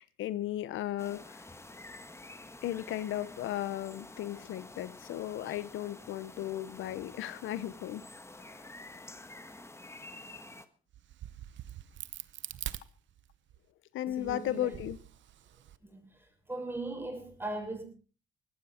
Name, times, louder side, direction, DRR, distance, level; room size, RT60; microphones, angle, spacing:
voice 1, 0.0-1.5 2.6-8.0 8.6-8.7 13.9-15.0, left 13 dB, 80° left, 0.8 m, -36 dB
sound 1, 1.0-10.7, left 2 dB, 15° left, 1.5 m, -49 dB
Crack, 10.9-13.6 14.1-15.8, right 12 dB, 70° right, 0.8 m, -44 dB
voice 2, 14.1-14.8 15.8-17.8, right 2 dB, 10° right, 6.7 m, -39 dB
18.5 x 15.5 x 4.3 m
cardioid pair, 90°, 20 cm